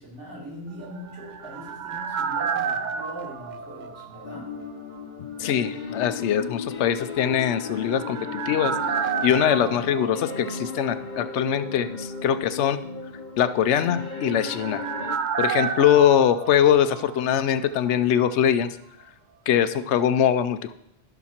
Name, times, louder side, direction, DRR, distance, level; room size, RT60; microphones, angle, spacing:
voice 1, 0.0-4.5, equal, 90° right, -6 dB, 3.4 m, -41 dB
sound 1, 0.8-4.7 4.9-5.0 7.4-11.2 11.4-11.5 13.8-17.6 17.9-18.0, right 6 dB, 55° right, 0.6 m, -31 dB
sound 2, 4.2-15.2, left 5 dB, 50° left, 0.7 m, -35 dB
voice 2, 5.4-8.7 9.2-12.8 13.4-14.8 15.4-18.7 19.5-20.7, left 9 dB, 85° left, 11 dB, 0.9 m, -22 dB
16.0 x 6.1 x 2.9 m, 0.79 s
omnidirectional pair, 1.2 m